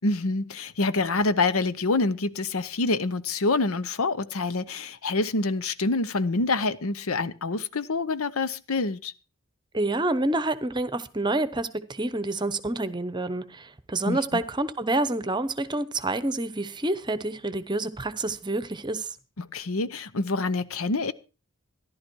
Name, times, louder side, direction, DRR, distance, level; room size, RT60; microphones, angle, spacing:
voice 1, 0.0-9.1 14.0-14.4 19.4-21.1, left 3 dB, 80° left, 0.9 m, -26 dB
voice 2, 9.7-19.1, right 2 dB, 20° right, 0.9 m, -28 dB
14.5 x 11.5 x 4.6 m
head